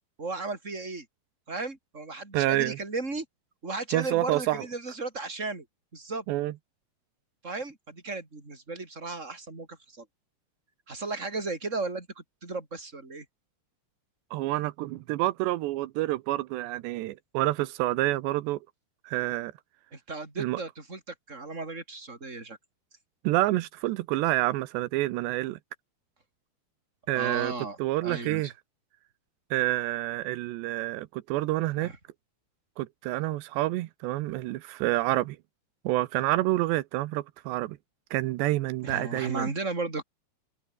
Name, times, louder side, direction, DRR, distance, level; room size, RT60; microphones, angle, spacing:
voice 1, 0.2-1.0 1.5-3.2 3.6-5.6 5.9-6.2 7.4-10.0 10.9-12.1 12.4-13.2 19.9-22.6 27.1-28.4 31.8-32.0 38.8-40.0, right 3 dB, 15° right, 5.2 m, -35 dB
voice 2, 2.3-2.8 3.9-4.7 6.3-6.5 14.3-18.6 19.0-19.5 20.4-20.6 23.2-25.6 27.1-27.5 27.8-28.5 29.5-31.9 32.8-35.4 35.8-37.8 38.1-39.5, right 17 dB, 85° right, 3.1 m, -28 dB
omnidirectional pair, 4.9 m